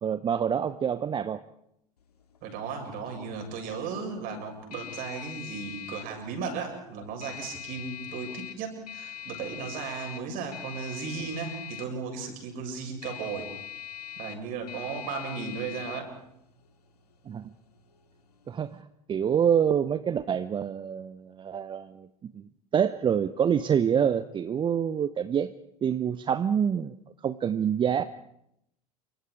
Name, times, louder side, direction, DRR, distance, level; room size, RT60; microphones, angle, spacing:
voice 1, 0.0-1.4 17.3-17.5 18.5-18.7 19.1-22.1 22.3-25.5 25.8-26.9 27.2-28.0, right 8 dB, 25° right, 13 dB, 0.8 m, -26 dB
sound 1, 2.0-18.8, left 11 dB, 75° left, 2.6 m, -44 dB
voice 2, 2.4-13.5 14.2-16.1, right 5 dB, 45° right, 3 dB, 7.6 m, -35 dB
28.5 x 24.5 x 4.9 m, 0.78 s
figure-of-eight pair, 80°, 20 cm